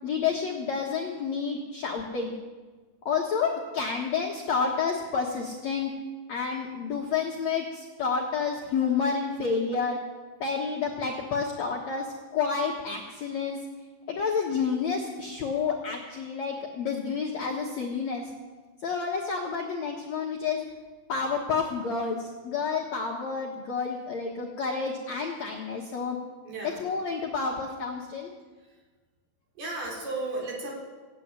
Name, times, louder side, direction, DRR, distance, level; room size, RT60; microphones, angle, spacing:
voice 1, 0.0-2.4 3.1-5.9 6.3-10.0 10.4-13.6 14.1-18.3 18.8-20.7 21.1-26.2 26.6-28.3, left 5 dB, 65° left, -1 dB, 1.8 m, -29 dB
voice 2, 26.5-26.8 29.6-30.7, right 2 dB, 60° right, -3 dB, 5.9 m, -34 dB
16.0 x 8.7 x 9.6 m, 1.3 s
omnidirectional pair, 5.0 m